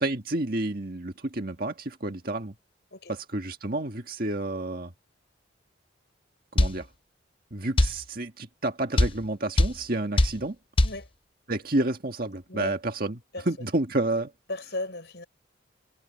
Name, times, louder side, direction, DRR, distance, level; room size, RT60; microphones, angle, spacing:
voice 1, 0.0-2.5 3.1-4.9 6.5-6.9 7.5-10.6 11.5-14.3, right 2 dB, 50° right, 1.8 m, -30 dB
sound 1, 6.6-6.8 7.8-8.0 9.0-9.2 9.6-9.8 10.2-10.4 10.8-11.0, left 1 dB, 25° left, 0.8 m, -20 dB
voice 2, 14.5-15.3, left 2 dB, 60° left, 6.6 m, -35 dB
head